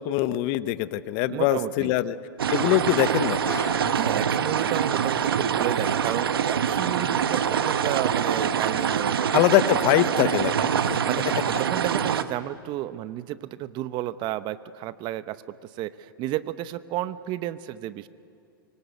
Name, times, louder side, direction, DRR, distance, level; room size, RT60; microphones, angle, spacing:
voice 1, 0.0-2.2 2.5-3.5 9.3-10.7, left 14 dB, 45° left, 14 dB, 1.0 m, -23 dB
voice 2, 1.3-1.9 3.9-9.4 10.2-10.3 10.8-18.1, right 14 dB, 40° right, 14 dB, 0.9 m, -32 dB
sound 1, 2.4-12.2, right 8 dB, 80° right, 1.2 m, -25 dB
sound 2, 3.4-9.3 9.9-10.0, left 1 dB, 20° left, 7.7 m, -45 dB
24.5 x 23.5 x 8.2 m, 2.5 s
hypercardioid pair, 105°, 12 cm